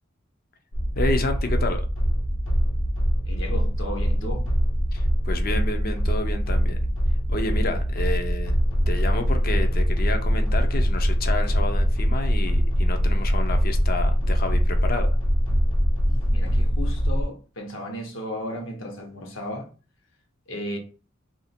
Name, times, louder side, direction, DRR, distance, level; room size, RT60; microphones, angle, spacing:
sound 1, 0.7-17.2, equal, 90° left, 1.2 m, -22 dB
voice 1, 1.0-1.8 4.9-6.8 7.3-8.6 8.9-15.1, left 2 dB, 45° left, 0.6 m, -30 dB
voice 2, 3.3-4.5 16.1-19.7 20.5-20.8, left 1 dB, 70° left, 1.1 m, -34 dB
2.9 x 2.6 x 4.3 m
head